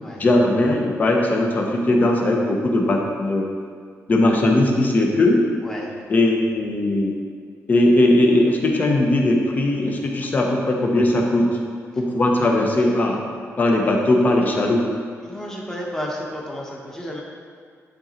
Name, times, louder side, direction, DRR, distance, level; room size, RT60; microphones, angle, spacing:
voice 1, 0.2-3.5 4.1-5.4 6.1-7.1 7.7-11.6 12.0-13.2 13.6-14.8, left 1 dB, 30° left, 0 dB, 0.9 m, -19 dB
voice 2, 15.2-17.2, equal, 10° left, -3 dB, 1.2 m, -32 dB
10.5 x 3.9 x 4.3 m, 2.1 s
wide cardioid pair, 155°, 5 cm